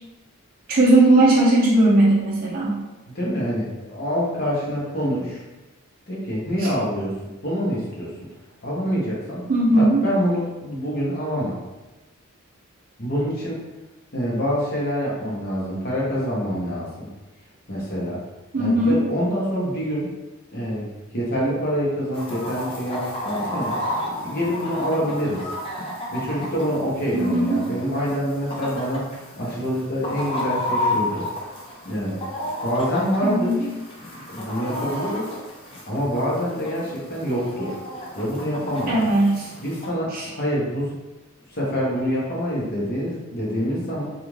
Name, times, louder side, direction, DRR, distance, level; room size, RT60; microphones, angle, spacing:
voice 1, 0.7-2.8 6.6-6.7 9.5-10.0 18.5-19.0 27.1-27.6 33.2-33.6 38.9-39.5 40.1-40.3, right 1 dB, 40° right, -4 dB, 0.4 m, -18 dB
voice 2, 3.1-5.4 6.1-7.1 7.4-8.1 8.6-11.6 13.0-13.6 14.1-17.1 17.7-18.2 18.5-20.1 20.5-23.8 24.2-25.4 26.1-29.1 29.4-31.3 31.8-32.2 32.6-33.7 34.3-35.3 35.9-37.7 38.1-39.0 39.6-40.9 41.5-44.1, equal, 45° left, -5 dB, 0.9 m, -26 dB
Chicken rooster, 22.1-39.9, left 1 dB, 25° left, 0.4 m, -32 dB
2.5 x 2.4 x 3.1 m, 1.1 s
head